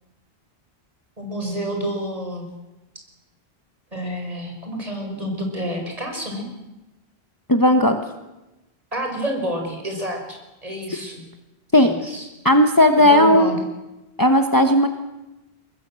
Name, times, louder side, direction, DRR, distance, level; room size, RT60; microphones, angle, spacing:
voice 1, 1.2-2.5 3.9-6.5 8.9-11.2 11.7-12.3 13.0-13.6, equal, 35° right, 2 dB, 5.7 m, -29 dB
voice 2, 7.5-8.0 11.7-11.9 12.4-13.5 14.2-14.9, left 1 dB, 20° left, 6 dB, 1.2 m, -15 dB
23.5 x 20.5 x 7.7 m, 1.0 s
omnidirectional pair, 1.1 m